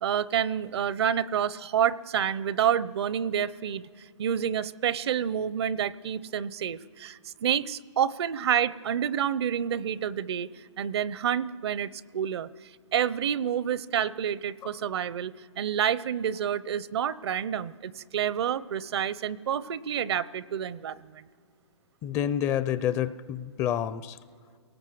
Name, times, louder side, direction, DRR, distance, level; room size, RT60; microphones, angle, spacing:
voice 1, 0.0-3.8 4.2-10.5 10.8-12.5 12.9-21.3, right 9 dB, 60° right, 19 dB, 0.7 m, -28 dB
voice 2, 22.0-24.2, left 10 dB, 20° left, 14 dB, 0.5 m, -28 dB
28.5 x 18.0 x 7.7 m, 2.2 s
hypercardioid pair, 145°, 15 cm